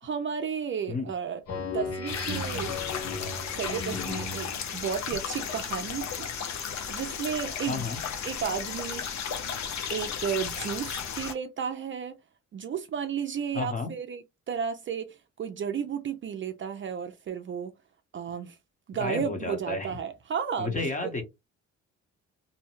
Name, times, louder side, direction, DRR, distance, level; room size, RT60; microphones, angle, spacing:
voice 1, 0.0-2.7 3.5-6.3 6.9-7.9 8.3-9.0 9.9-12.1 12.5-17.7 18.1-18.6 18.9-20.9, right 7 dB, 40° right, 0.4 m, -33 dB
Speech synthesizer, 1.5-4.8, left 3 dB, 50° left, 1.2 m, -35 dB
sound 1, 2.1-11.3, left 7 dB, 65° left, 0.7 m, -34 dB
voice 2, 7.7-8.0 13.5-13.9 19.0-20.0 20.6-21.2, left 3 dB, 25° left, 1.0 m, -31 dB
2.7 x 2.2 x 3.0 m
cardioid pair, 90°, 30 cm